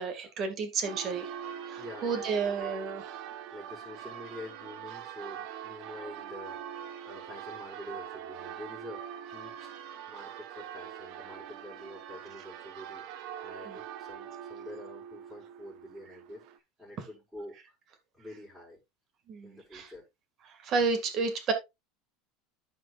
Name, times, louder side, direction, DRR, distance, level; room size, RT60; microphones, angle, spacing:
voice 1, 0.0-1.3 1.7-3.0 13.7-13.8 19.3-19.9 20.6-21.5, right 4 dB, 35° right, 1.8 m, -31 dB
Church bell, 0.8-16.6, right 9 dB, 55° right, 0.9 m, -43 dB
voice 2, 1.8-2.7 3.5-6.6 7.0-9.7 10.1-13.1 13.4-16.4 16.8-17.5 18.1-18.8 19.4-20.1, left 1 dB, ahead, 4.7 m, -47 dB
14.0 x 5.0 x 2.4 m
supercardioid pair, 150°, 0 cm